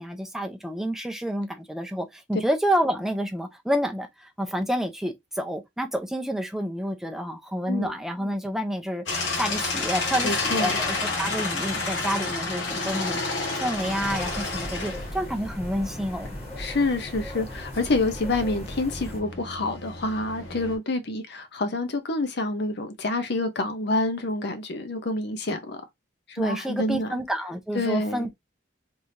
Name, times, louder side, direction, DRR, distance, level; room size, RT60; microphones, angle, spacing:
voice 1, 0.0-16.3 26.3-28.3, equal, ahead, 0.6 m, -29 dB
sound 1, 9.1-20.8, left 3 dB, 80° left, 1.5 m, -31 dB
voice 2, 10.2-10.8 16.6-25.8 26.3-27.1 27.7-28.3, left 2 dB, 60° left, 0.7 m, -27 dB
sound 2, 13.7-19.2, left 1 dB, 35° left, 1.6 m, -37 dB
3.6 x 3.3 x 2.6 m
head